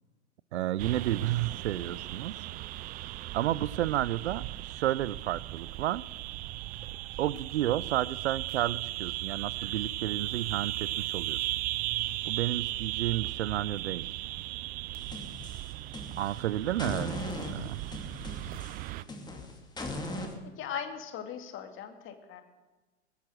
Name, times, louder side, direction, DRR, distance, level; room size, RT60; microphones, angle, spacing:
voice 1, 0.5-2.3 3.3-6.0 7.2-11.4 12.3-14.1 16.2-17.8, right 13 dB, 70° right, 20 dB, 0.6 m, -31 dB
sound 1, 0.8-19.0, right 16 dB, 25° right, 0.4 m, -37 dB
sound 2, 14.9-16.4 16.8-20.3, left 2 dB, 10° left, 2.5 m, -39 dB
voice 2, 20.4-22.4, left 8 dB, 35° left, 6 dB, 2.3 m, -39 dB
22.0 x 9.0 x 6.4 m, 1.2 s
hypercardioid pair, 115°, 35 cm